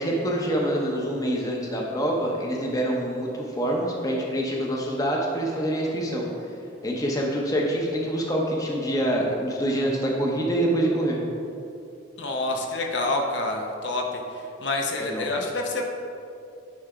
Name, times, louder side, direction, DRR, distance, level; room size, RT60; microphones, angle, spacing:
voice 1, 0.0-6.2 6.8-11.2 15.0-15.3, right 1 dB, 20° left, -1 dB, 0.7 m, -26 dB
voice 2, 12.2-15.8, left 2 dB, 65° left, 2 dB, 0.7 m, -28 dB
9.5 x 3.4 x 4.9 m, 2.7 s
head